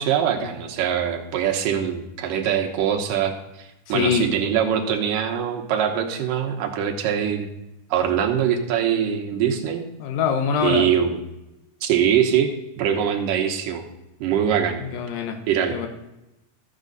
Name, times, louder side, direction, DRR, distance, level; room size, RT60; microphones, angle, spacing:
voice 1, 0.0-7.5 7.9-9.8 10.6-11.2 11.8-12.5 12.8-13.8 14.2-14.8 15.5-15.9, right 9 dB, 75° right, 3 dB, 2.6 m, -23 dB
voice 2, 3.9-4.3 10.0-10.9 14.8-15.4 15.7-15.9, left 7 dB, 80° left, 5 dB, 2.6 m, -24 dB
13.5 x 7.5 x 4.0 m, 0.94 s
omnidirectional pair, 4.1 m